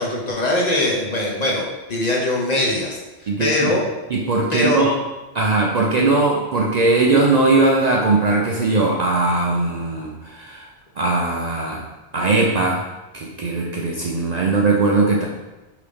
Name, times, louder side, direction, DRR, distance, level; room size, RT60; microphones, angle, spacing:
voice 1, 0.0-3.0 3.4-3.8 4.5-4.9, left 1 dB, 45° left, -2 dB, 0.7 m, -21 dB
voice 2, 3.3-3.7 4.1-4.9 5.3-10.7 11.0-11.8 12.1-12.8 13.1-15.3, right 3 dB, 65° right, -2 dB, 0.4 m, -19 dB
4.9 x 2.7 x 3.4 m, 1.1 s
omnidirectional pair, 1.2 m